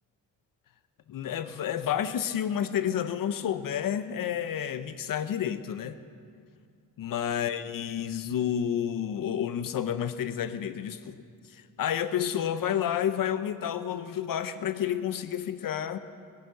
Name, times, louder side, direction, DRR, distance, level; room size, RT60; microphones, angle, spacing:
voice 1, 1.1-6.0 7.0-11.2 11.5-16.0, left 9 dB, 70° left, 12 dB, 0.7 m, -30 dB
20.5 x 9.4 x 6.5 m, 2.3 s
wide cardioid pair, 120°, 34 cm